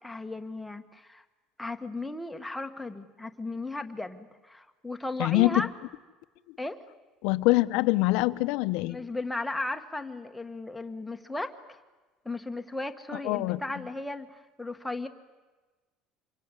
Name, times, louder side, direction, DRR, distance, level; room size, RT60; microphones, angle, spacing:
voice 1, 0.0-1.2 1.6-5.7 6.6-6.8 8.9-11.8 12.2-15.1, left 2 dB, 5° left, 6 dB, 1.4 m, -36 dB
voice 2, 5.2-5.7 7.2-9.0 13.2-13.6, left 20 dB, 70° left, 13 dB, 0.9 m, -24 dB
26.5 x 23.0 x 9.8 m, 1.2 s
cardioid pair, 170°, 0 cm